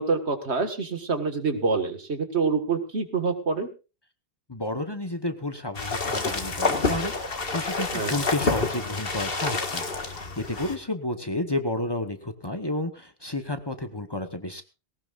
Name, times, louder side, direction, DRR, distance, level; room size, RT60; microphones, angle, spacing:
voice 1, 0.0-3.7 7.9-8.2, right 4 dB, 75° right, 7 dB, 2.0 m, -26 dB
voice 2, 4.5-14.6, left 2 dB, 25° left, 8 dB, 1.1 m, -31 dB
sound 1, 5.7-10.8, left 3 dB, 60° left, 1.9 m, -28 dB
19.0 x 18.0 x 2.5 m, 0.31 s
omnidirectional pair, 1.1 m